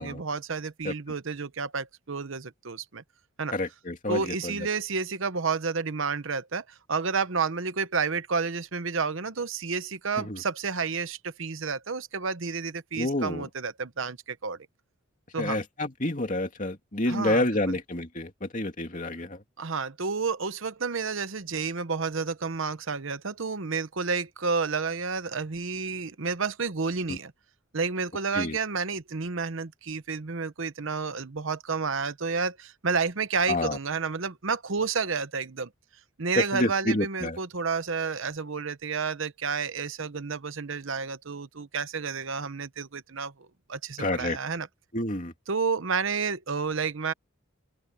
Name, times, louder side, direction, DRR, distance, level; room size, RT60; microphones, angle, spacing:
voice 1, 0.0-3.0 3.4-3.5 4.1-14.6 15.3-15.6 17.1-17.8 19.6-27.3 27.7-35.7 36.2-44.7 45.5-47.1, right 5 dB, 65° right, 0.9 m, -30 dB
voice 2, 3.5-4.7 10.2-10.4 12.9-13.5 15.4-19.4 27.1-27.2 28.3-28.6 33.5-33.8 36.4-37.4 44.0-44.4 44.9-45.3, left 1 dB, 35° left, 2.6 m, -29 dB
open air
head